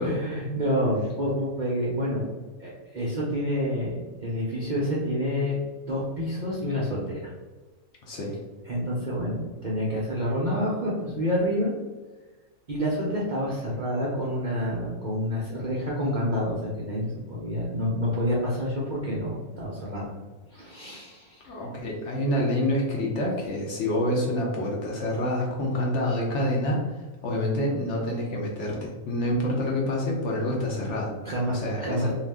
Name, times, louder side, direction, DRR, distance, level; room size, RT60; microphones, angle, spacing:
voice 1, 0.0-2.2 2.6-4.0 4.2-5.6 5.9-7.2 8.7-11.7 12.7-20.1 20.5-21.4 31.2-32.1, equal, 60° right, -5 dB, 0.5 m, -28 dB
voice 2, 8.0-8.4 21.5-26.8 27.2-31.1 31.5-32.1, left 1 dB, 65° left, -2 dB, 0.8 m, -27 dB
2.7 x 2.3 x 3.3 m, 1.2 s
omnidirectional pair, 1.5 m